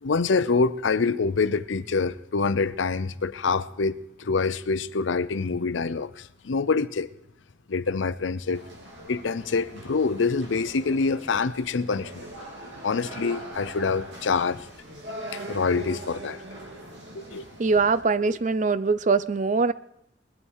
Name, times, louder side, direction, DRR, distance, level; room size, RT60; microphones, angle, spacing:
voice 1, 0.0-7.1 7.7-8.6 9.1-12.3 12.8-14.7 15.3-16.4 17.1-17.5, left 4 dB, 85° left, 0.6 m, -26 dB
sound 1, 8.5-18.0, right 1 dB, 65° right, 2.6 m, -41 dB
voice 2, 17.6-19.7, right 4 dB, 40° right, 0.5 m, -22 dB
20.5 x 12.0 x 4.7 m
head